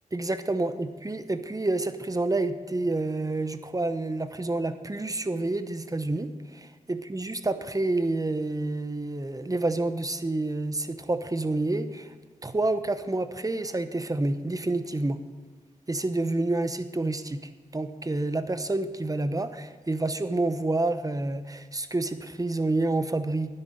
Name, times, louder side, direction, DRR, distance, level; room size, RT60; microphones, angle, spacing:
voice 1, 0.1-12.1 12.4-15.2 15.9-17.4 17.7-23.6, right 2 dB, 25° right, 10 dB, 0.9 m, -28 dB
12.5 x 9.8 x 5.1 m, 1.5 s
cardioid pair, 55°, 14 cm